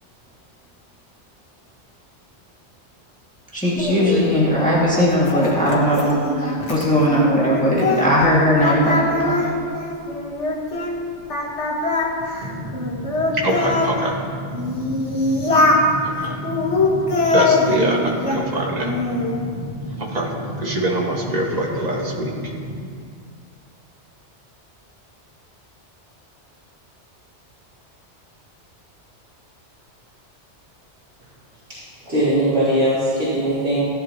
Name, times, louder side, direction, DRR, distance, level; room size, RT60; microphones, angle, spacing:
voice 1, 3.5-9.6, equal, 5° left, -6 dB, 2.1 m, -19 dB
Singing, 3.8-8.3 8.6-10.9 11.3-13.9 14.5-15.9 16.4-18.5 18.8-19.4, left 2 dB, 85° left, 1.9 m, -22 dB
voice 2, 12.4-14.2 14.6-15.5 15.9-22.9, right 1 dB, 35° right, -3 dB, 1.9 m, -25 dB
voice 3, 32.0-33.8, right 1 dB, 75° right, -13 dB, 4.0 m, -20 dB
17.0 x 11.0 x 3.0 m, 2.1 s
omnidirectional pair, 1.2 m